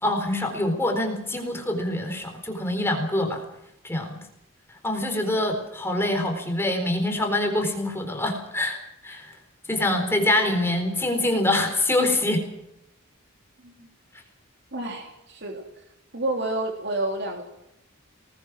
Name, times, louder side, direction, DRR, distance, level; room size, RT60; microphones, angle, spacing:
voice 1, 0.0-3.4 3.8-4.2 4.8-8.8 9.0-9.3 9.7-12.4, left 1 dB, 10° left, 3 dB, 4.0 m, -25 dB
voice 2, 14.7-15.6 16.1-17.4, right 2 dB, 55° right, 2 dB, 3.3 m, -29 dB
26.5 x 19.5 x 6.2 m, 0.84 s
head